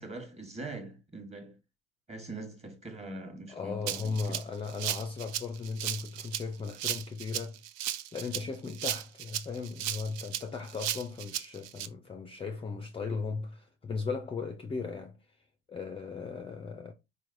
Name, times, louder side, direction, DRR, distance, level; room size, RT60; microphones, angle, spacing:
voice 1, 0.0-1.6 2.1-4.4, right 2 dB, 20° right, 1.2 m, -42 dB
voice 2, 3.5-7.6 8.1-15.2 15.7-16.9, left 4 dB, 15° left, 0.5 m, -37 dB
Rattle (instrument), 3.9-11.9, right 12 dB, 80° right, 0.5 m, -35 dB
4.1 x 3.2 x 2.5 m
supercardioid pair, 95°, 32 cm